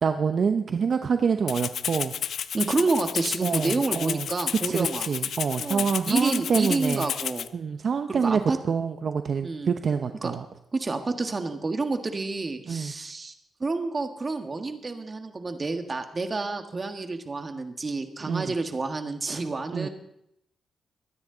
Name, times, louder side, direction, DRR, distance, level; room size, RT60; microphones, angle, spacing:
voice 1, 0.0-2.1 3.4-4.3 4.6-7.1 7.5-8.4 8.7-10.4 12.7-12.9 18.3-18.5 19.7-19.9, right 6 dB, 55° right, 8 dB, 0.7 m, -26 dB
Rattle (instrument), 1.5-7.5, left 8 dB, 75° left, 0.6 m, -31 dB
voice 2, 2.5-5.1 5.6-7.5 8.1-8.6 9.4-9.7 10.2-10.3 10.7-13.3 13.6-19.9, right 3 dB, 35° right, 6 dB, 1.7 m, -29 dB
23.0 x 9.8 x 3.9 m, 0.79 s
cardioid pair, 85°, 0 cm